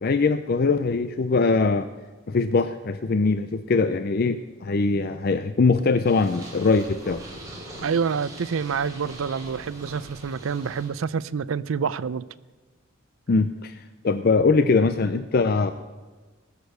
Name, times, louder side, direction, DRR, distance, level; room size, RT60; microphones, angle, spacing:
voice 1, 0.0-1.9 2.3-7.2 13.3-15.7, left 4 dB, 45° left, 11 dB, 0.4 m, -22 dB
Purr, 6.0-10.9, right 1 dB, 15° right, 3.2 m, -42 dB
voice 2, 7.8-12.2, right 6 dB, 75° right, 18 dB, 0.5 m, -27 dB
20.0 x 6.7 x 6.7 m, 1.3 s
head